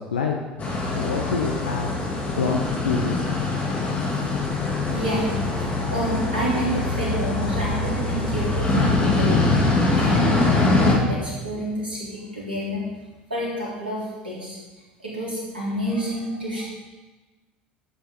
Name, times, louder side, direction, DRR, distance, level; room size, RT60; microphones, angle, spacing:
sound 1, 0.6-11.0, left 2 dB, 30° left, 2.8 m, -23 dB
voice 1, 0.9-1.9 2.4-3.3, left 5 dB, 80° left, 1 dB, 0.9 m, -26 dB
voice 2, 4.5-9.4 9.9-12.8 13.3-14.6 15.0-16.6, equal, 90° right, -6 dB, 3.4 m, -29 dB
12.5 x 8.5 x 3.9 m, 1.2 s
figure-of-eight pair, 70°, 5 cm